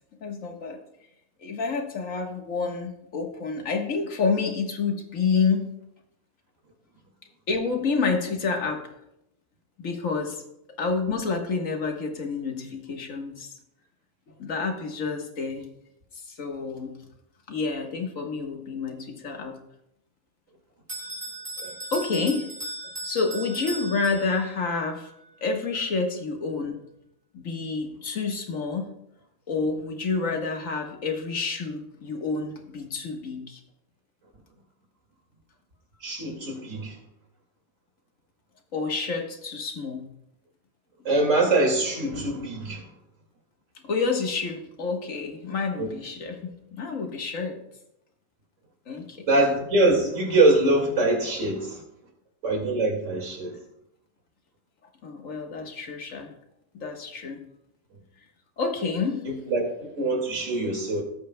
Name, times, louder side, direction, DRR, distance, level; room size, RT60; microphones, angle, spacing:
voice 1, 0.2-0.8 1.4-5.6 7.5-8.8 9.8-10.4 10.8-13.5 14.4-15.7 16.3-16.9 17.5-19.6 21.9-22.5 23.0-25.1 25.4-26.8 27.3-28.9 29.5-33.6 38.7-40.1 43.8-46.5 46.8-47.6 48.9-49.2 55.0-56.3 56.7-57.4 58.6-59.2, left 4 dB, 85° left, 3 dB, 1.8 m, -28 dB
Bell, 20.9-24.6, right 1 dB, 45° right, 4.4 m, -37 dB
voice 2, 36.0-37.0 41.0-42.9 45.8-45.9 49.3-51.8 52.4-53.5 59.2-61.0, right 2 dB, 75° right, 2 dB, 2.5 m, -23 dB
18.0 x 8.4 x 2.2 m, 0.81 s
omnidirectional pair, 1.3 m